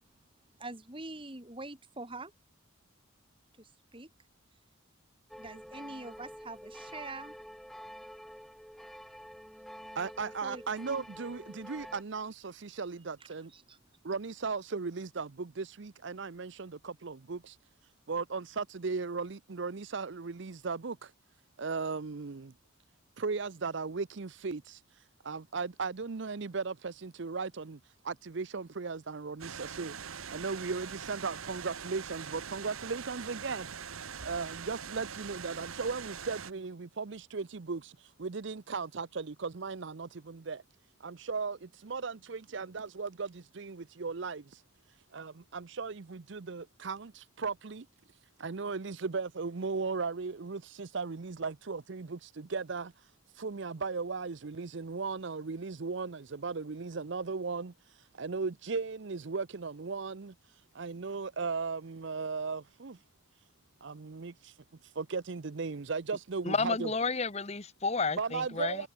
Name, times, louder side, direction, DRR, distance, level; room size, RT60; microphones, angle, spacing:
voice 1, 0.6-2.3 3.6-4.1 5.4-7.3 10.4-10.6 13.5-13.8, right 2 dB, 25° right, 2.6 m, -44 dB
sound 1, 5.3-12.0, equal, ahead, 3.5 m, -48 dB
voice 2, 9.9-13.5 14.0-17.6 18.1-21.1 21.6-22.5 23.2-24.8 25.2-30.0 30.3-33.7 34.2-40.6 41.0-44.6 45.1-47.9 48.4-52.9 53.3-60.3 60.7-63.0 63.8-64.5 64.8-66.9 68.2-68.9, right 4 dB, 60° right, 0.6 m, -37 dB
sound 2, 29.4-36.5, right 7 dB, 85° right, 1.3 m, -43 dB
voice 3, 66.4-68.8, left 4 dB, 30° left, 1.1 m, -31 dB
head